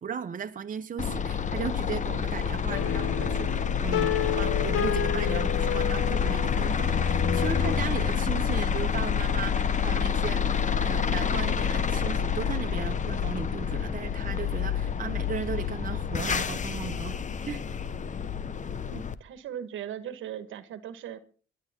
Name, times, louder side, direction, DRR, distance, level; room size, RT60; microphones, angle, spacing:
voice 1, 0.0-3.5 3.8-10.4 10.8-17.2 17.5-17.6, right 7 dB, 40° right, 1.2 m, -36 dB
sound 1, 1.0-19.1, left 7 dB, 40° left, 0.9 m, -28 dB
sound 2, 2.7-7.8, left 9 dB, 85° left, 1.1 m, -31 dB
voice 2, 18.9-21.2, right 9 dB, 80° right, 1.5 m, -38 dB
23.5 x 10.5 x 3.7 m
cardioid pair, 90°, 20 cm